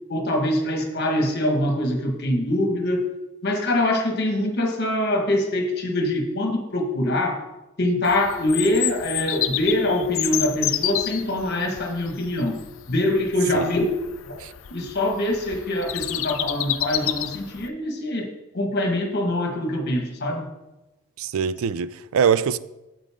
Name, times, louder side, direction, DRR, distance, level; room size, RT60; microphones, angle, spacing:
voice 1, 0.1-3.0 3.4-7.4 7.8-12.6 12.9-13.8 14.3-14.4 14.7-18.3 18.5-20.5, left 1 dB, 50° left, 1.5 m, -24 dB
Bird vocalization bird call bird song, 8.1-17.7, left 12 dB, 65° left, 0.5 m, -30 dB
voice 2, 21.2-22.6, right 7 dB, 75° right, 0.4 m, -23 dB
9.0 x 7.9 x 3.6 m
head